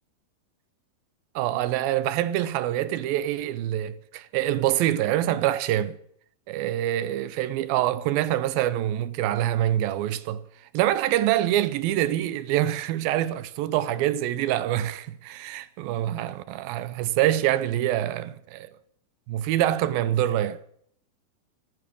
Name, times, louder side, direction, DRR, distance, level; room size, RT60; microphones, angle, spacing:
voice 1, 1.4-6.0 6.5-10.4 10.7-18.7 19.3-20.6, right 13 dB, 80° right, 2.5 m, -25 dB
15.5 x 14.0 x 5.3 m
omnidirectional pair, 4.3 m